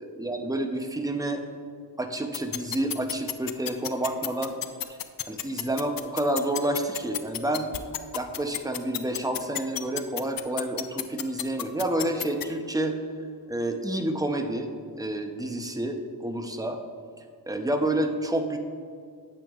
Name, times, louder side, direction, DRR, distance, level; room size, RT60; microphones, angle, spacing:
voice 1, 0.0-1.4 2.0-4.5 5.3-7.7 8.1-13.0 13.5-14.7 15.0-16.8 17.5-18.6, right 1 dB, 10° right, 5 dB, 0.6 m, -29 dB
sound 1, 2.3-12.4, left 11 dB, 60° left, 0.5 m, -30 dB
9.1 x 8.0 x 2.4 m, 2.2 s
wide cardioid pair, 85°, 40 cm